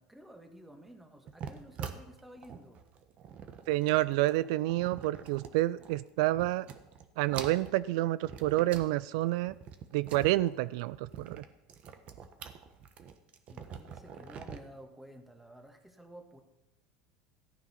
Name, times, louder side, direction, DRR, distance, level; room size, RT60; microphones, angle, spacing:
voice 1, 0.0-2.8 13.5-16.4, right 1 dB, 5° right, 5 dB, 1.8 m, -52 dB
sound 1, 1.3-6.0 6.3-7.1 7.3-8.9 9.2-14.6, right 7 dB, 45° right, 1.4 m, -45 dB
voice 2, 3.7-6.7 7.2-9.5 9.9-11.4, right 17 dB, 70° right, 17 dB, 0.3 m, -29 dB
14.5 x 9.1 x 5.9 m, 0.95 s
supercardioid pair, 110°, 3 cm